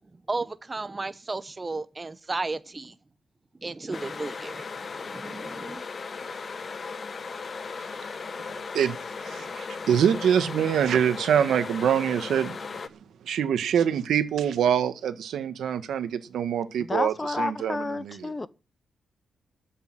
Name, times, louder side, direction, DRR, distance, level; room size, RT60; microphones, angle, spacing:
voice 1, 0.3-2.9 3.6-5.8, right 3 dB, 20° right, 0.8 m, -34 dB
sound 1, 3.9-12.9, left 5 dB, 35° left, 0.9 m, -37 dB
voice 2, 8.4-9.0 9.2-12.6 12.9-13.0 13.2-18.3, right 8 dB, 80° right, 1.6 m, -25 dB
voice 3, 16.9-18.5, left 3 dB, 20° left, 0.6 m, -30 dB
14.0 x 6.8 x 9.5 m
wide cardioid pair, 155°, 0 cm